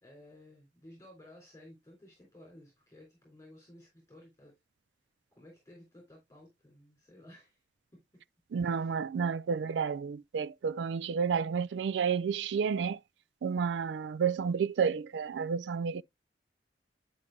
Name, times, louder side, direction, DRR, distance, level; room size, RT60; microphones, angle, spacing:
voice 1, 0.0-4.5 5.3-7.6 7.9-8.0 8.6-8.9, left 1 dB, 20° left, 3.4 m, -55 dB
voice 2, 8.5-13.0 13.4-16.0, right 6 dB, 85° right, 0.4 m, -31 dB
11.0 x 5.4 x 2.3 m
head